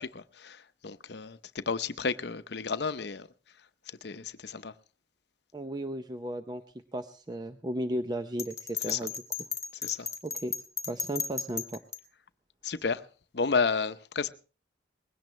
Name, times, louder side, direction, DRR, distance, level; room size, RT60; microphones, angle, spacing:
voice 1, 0.0-3.3 4.0-4.7 8.9-9.0 9.8-10.1 12.6-13.0 13.3-14.3, left 5 dB, 60° left, 0.7 m, -32 dB
voice 2, 5.5-6.6 6.9-9.1 10.2-10.5 10.9-11.8, right 1 dB, 20° right, 0.6 m, -35 dB
Bell, 8.4-12.0, left 6 dB, 15° left, 1.1 m, -35 dB
20.5 x 17.0 x 3.2 m
head